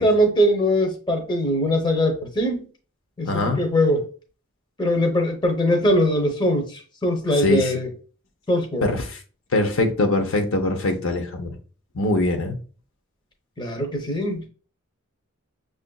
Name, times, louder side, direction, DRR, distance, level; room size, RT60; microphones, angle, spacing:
voice 1, 0.0-2.7 3.2-4.0 4.8-7.9 8.5-8.9 13.6-14.5, equal, 20° left, 0.7 m, -21 dB
voice 2, 3.2-3.6 7.4-7.7 8.8-9.2 9.5-11.6 11.9-12.6, left 2 dB, 75° left, 0.6 m, -22 dB
5.9 x 2.5 x 2.2 m
head